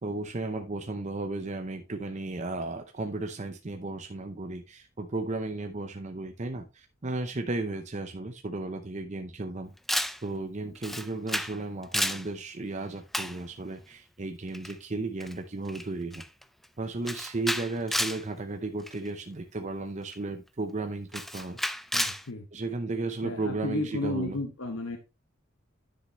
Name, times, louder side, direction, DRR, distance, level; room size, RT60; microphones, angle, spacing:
voice 1, 0.0-9.7 10.2-16.2 16.8-21.6 22.5-24.4, right 2 dB, 35° right, 0.7 m, -34 dB
Camera, 9.9-10.2 10.8-11.6 11.8-12.3 13.1-13.4 14.5-14.7 15.2-15.3 15.7-15.9 16.1-16.4 17.1-18.2 18.9-19.1 20.1-20.2 21.1-22.2, equal, ahead, 0.4 m, -31 dB
voice 2, 21.9-22.5 23.2-25.0, left 2 dB, 80° left, 1.1 m, -33 dB
10.0 x 6.6 x 3.1 m
head